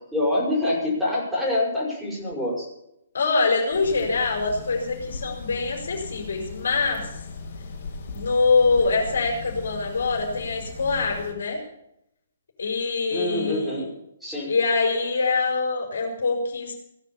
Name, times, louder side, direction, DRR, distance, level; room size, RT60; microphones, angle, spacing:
voice 1, 0.1-2.7 13.1-13.9 14.2-14.5, left 1 dB, 5° right, -5 dB, 6.5 m, -25 dB
voice 2, 3.1-7.2 8.1-11.6 12.6-13.8 14.5-16.7, left 4 dB, 60° left, 1 dB, 5.0 m, -24 dB
sound 1, 3.7-11.3, left 3 dB, 45° left, 5.4 m, -38 dB
16.5 x 11.0 x 7.2 m, 0.79 s
figure-of-eight pair, 125°, 0 cm